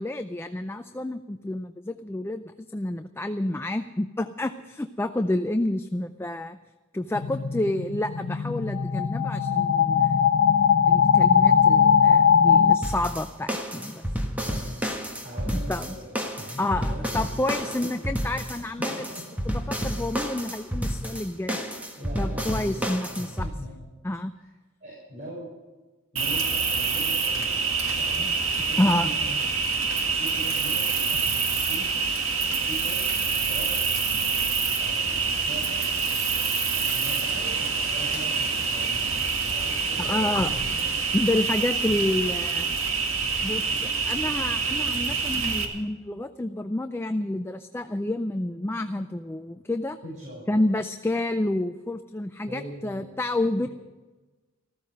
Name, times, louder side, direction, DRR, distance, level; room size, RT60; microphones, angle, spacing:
voice 1, 0.0-2.4 2.7-6.6 6.9-10.2 10.9-14.0 15.7-15.9 16.6-19.1 19.5-21.6 22.2-23.5 24.0-24.4 28.8-29.1 40.0-40.5 41.1-42.7 43.4-50.0 50.5-53.7, left 1 dB, 10° left, 8 dB, 0.4 m, -29 dB
sound 1, 7.2-12.8, left 7 dB, 85° left, 1.0 m, -20 dB
sound 2, 12.8-23.5, equal, 5° right, 1.5 m, -30 dB
voice 2, 15.2-16.1 16.4-18.1 18.9-19.2 22.0-22.9 23.2-23.9 24.3-24.5 24.8-25.5 26.1-27.6 28.0-28.3 28.6-29.4 30.1-31.9 32.5-33.1 33.5-33.7 34.8-35.8 36.7-39.2 39.5-40.6 50.0-50.6 52.5-53.1 53.6-53.7, equal, 35° right, -7 dB, 6.5 m, -41 dB
Cricket, 26.2-45.7, right 5 dB, 75° right, 2.0 m, -26 dB
14.5 x 14.0 x 6.5 m, 1.2 s
head